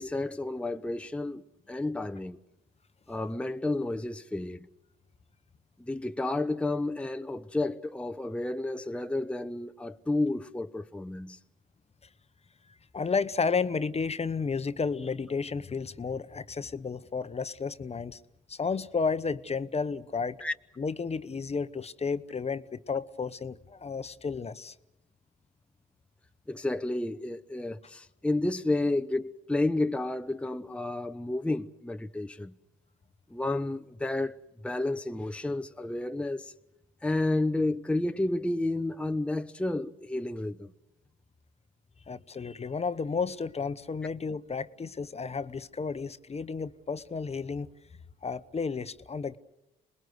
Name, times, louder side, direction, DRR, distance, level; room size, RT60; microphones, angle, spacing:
voice 1, 0.0-2.4 3.1-4.7 5.8-11.4 20.4-20.5 26.5-32.5 33.3-34.4 34.6-36.5 37.0-40.7, left 2 dB, 5° left, 0.8 m, -31 dB
voice 2, 12.9-18.2 18.5-20.4 20.8-24.7 42.1-47.7 48.2-49.4, left 5 dB, 30° left, 1.0 m, -32 dB
27.0 x 20.5 x 8.0 m
supercardioid pair, 70°, 21 cm